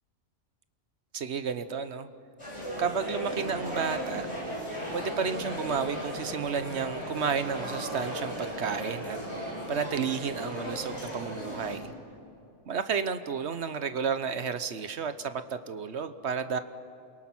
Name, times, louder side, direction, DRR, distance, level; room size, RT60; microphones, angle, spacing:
voice 1, 1.1-2.1 2.8-4.3 4.9-11.9 12.7-16.6, right 6 dB, 65° right, 10 dB, 1.2 m, -32 dB
sound 1, 2.4-11.8, equal, 25° left, 6.2 m, -36 dB
28.0 x 23.0 x 6.1 m, 2.7 s
omnidirectional pair, 1.3 m